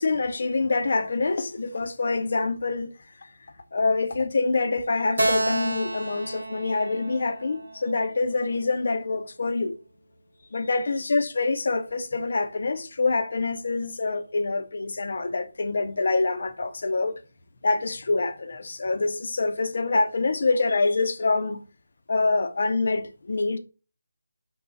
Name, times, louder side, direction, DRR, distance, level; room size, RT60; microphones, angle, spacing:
voice 1, 0.0-2.9 3.7-9.8 10.5-17.2 17.6-21.6 22.1-23.6, left 3 dB, 55° left, 0.4 m, -26 dB
Keyboard (musical), 5.2-8.6, right 1 dB, 60° right, 0.7 m, -30 dB
2.3 x 2.0 x 3.7 m
figure-of-eight pair, 160°, 0 cm